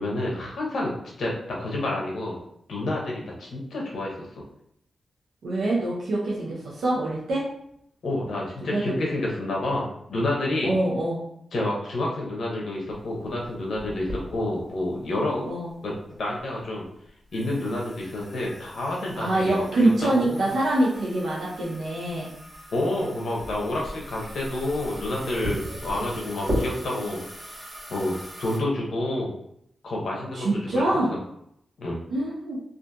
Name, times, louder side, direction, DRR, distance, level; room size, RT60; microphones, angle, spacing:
voice 1, 0.0-2.4 2.7-4.3 8.0-10.7 11.5-15.5 15.8-16.8 17.3-19.6 20.0-20.5 22.7-27.6 27.9-29.3 29.8-31.2 31.8-32.0, left 1 dB, 75° left, -2 dB, 0.7 m, -29 dB
voice 2, 5.4-7.4 8.6-9.0 10.6-11.2 15.5-15.7 19.2-22.3 30.3-31.1 32.1-32.6, right 1 dB, 85° right, -6 dB, 0.5 m, -25 dB
sound 1, 12.9-28.6, equal, 45° right, 1.4 m, -37 dB
2.6 x 2.5 x 2.3 m, 0.73 s
cardioid pair, 65°, 0 cm